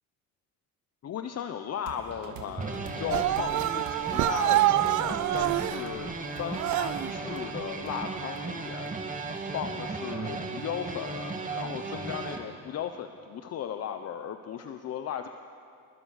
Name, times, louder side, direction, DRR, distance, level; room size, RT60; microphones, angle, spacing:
voice 1, 1.0-8.9 9.5-15.3, left 8 dB, 45° left, 7 dB, 1.0 m, -36 dB
sound 1, 1.9-9.4, right 6 dB, 90° right, 2.9 m, -48 dB
sound 2, 2.6-12.4, right 4 dB, 25° right, 2.3 m, -36 dB
sound 3, 3.1-5.8 6.5-7.1, right 15 dB, 60° right, 0.6 m, -26 dB
28.0 x 21.0 x 6.6 m, 2.5 s
cardioid pair, 125°, 34 cm